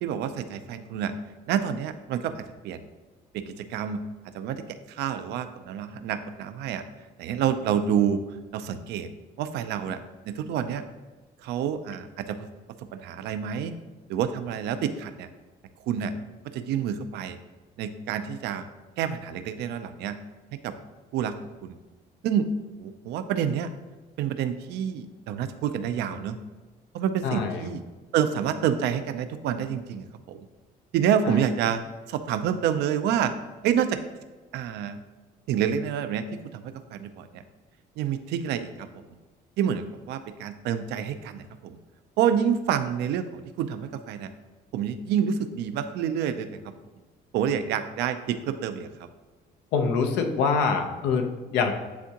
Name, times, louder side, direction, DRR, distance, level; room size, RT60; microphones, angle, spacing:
voice 1, 0.0-1.1 1.5-2.4 2.6-2.8 3.3-4.0 4.3-6.8 7.2-8.2 8.5-9.1 9.4-10.0 10.3-10.8 11.4-12.5 13.0-13.7 14.1-15.3 15.9-16.1 16.5-17.4 17.8-18.6 19.0-20.2 20.6-20.7 21.1-21.3 21.6-21.8 22.2-22.5 22.8-23.7 24.2-26.4 26.9-27.8 28.1-30.4 30.9-31.8 32.1-33.3 33.6-34.0 34.5-35.0 35.5-36.2 36.5-36.6 36.9-37.4 38.0-39.0 39.6-41.7 42.2-44.3 44.7-46.6 47.3-48.9, right 8 dB, 80° right, 10 dB, 0.5 m, -28 dB
voice 2, 27.2-27.7 31.3-31.4 49.7-51.7, left 5 dB, 90° left, 4 dB, 0.8 m, -25 dB
9.5 x 3.6 x 2.9 m, 1.3 s
cardioid pair, 110°, 17 cm